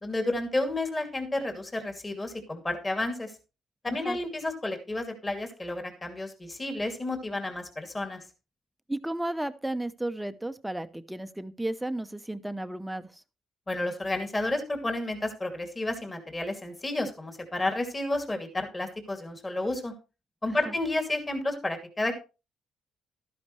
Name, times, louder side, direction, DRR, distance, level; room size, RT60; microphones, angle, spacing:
voice 1, 0.0-3.4 3.8-8.2 13.7-19.9 20.4-22.2, left 2 dB, 25° left, 5 dB, 2.6 m, -31 dB
voice 2, 3.9-4.2 8.9-13.2 20.6-20.7, right 1 dB, 5° right, 10 dB, 0.7 m, -33 dB
12.5 x 10.5 x 3.2 m, 0.30 s
cardioid pair, 90°, 0 cm